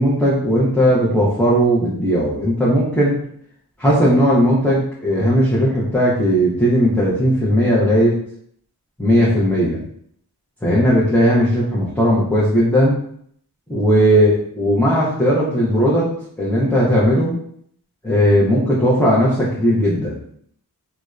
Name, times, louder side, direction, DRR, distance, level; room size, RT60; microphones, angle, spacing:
voice 1, 0.0-3.2 3.8-8.2 9.0-9.8 10.6-12.9 13.7-16.1 16.4-17.4 18.0-20.3, equal, 5° left, -8 dB, 0.7 m, -17 dB
2.7 x 2.1 x 2.3 m, 0.65 s
cardioid pair, 45°, 40 cm